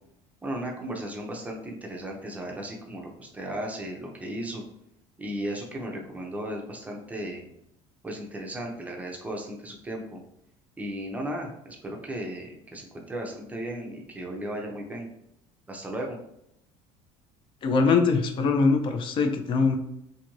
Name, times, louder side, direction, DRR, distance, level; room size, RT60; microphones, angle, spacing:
voice 1, 0.4-4.6 5.2-7.5 8.0-10.2 10.8-15.1 15.7-16.2, right 1 dB, 10° right, 0 dB, 0.5 m, -35 dB
voice 2, 17.6-19.8, left 4 dB, 40° left, 5 dB, 0.4 m, -22 dB
2.6 x 2.5 x 3.0 m, 0.79 s
cardioid pair, 135°, 13 cm